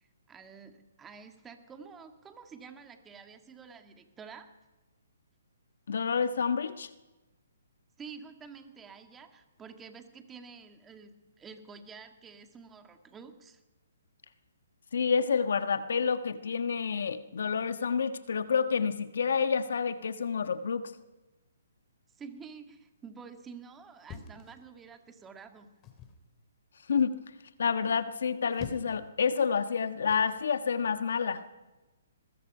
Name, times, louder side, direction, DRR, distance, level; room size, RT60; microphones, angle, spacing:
voice 1, 0.0-4.5 8.0-13.6 22.1-25.7, right 5 dB, 15° right, 6 dB, 2.0 m, -49 dB
voice 2, 5.9-6.9 14.9-20.9 26.9-27.2 27.6-31.4, left 6 dB, 70° left, 10 dB, 1.4 m, -29 dB
sound 1, 24.1-25.1 25.8-26.2 28.2-29.1 30.1-30.3, left 5 dB, 25° left, 2.9 m, -46 dB
23.0 x 20.5 x 5.6 m, 1.1 s
hypercardioid pair, 145°, 0 cm